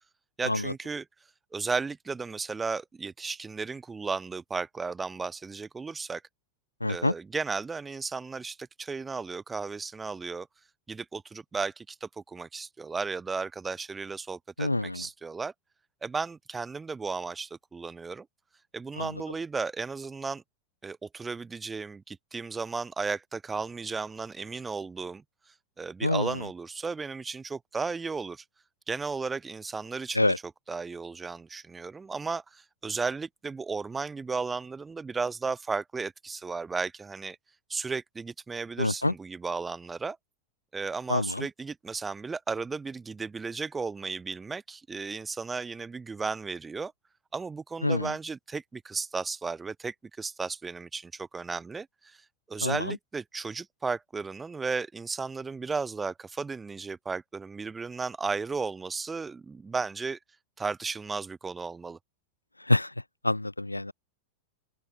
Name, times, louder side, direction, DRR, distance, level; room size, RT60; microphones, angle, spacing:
voice 1, 0.4-1.0 1.5-6.2 6.9-10.5 10.9-15.5 16.0-18.3 18.7-20.4 20.8-25.2 25.8-28.4 28.9-30.3 30.7-37.4 37.7-40.2 40.7-46.9 47.3-52.2 52.5-60.2 60.6-62.0, right 4 dB, 15° right, 0.4 m, -34 dB
voice 2, 6.8-7.1 14.6-15.1 19.0-19.1 26.0-26.5 30.1-30.4 38.8-39.1 41.1-41.5 47.8-48.1 52.6-53.0 62.6-62.9 63.2-63.9, left 2 dB, 85° left, 0.5 m, -27 dB
open air
figure-of-eight pair, 90°, 0 cm